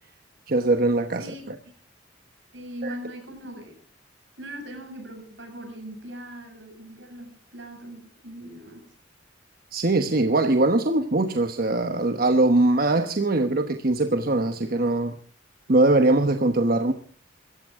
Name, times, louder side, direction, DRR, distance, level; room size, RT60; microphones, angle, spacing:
voice 1, 0.5-1.3 2.8-3.0 9.7-15.2 15.7-16.9, right 2 dB, 50° right, 1.1 m, -21 dB
voice 2, 1.2-1.7 2.5-3.8 4.4-8.9, right 1 dB, 80° right, 7.1 m, -40 dB
25.5 x 14.5 x 3.7 m
head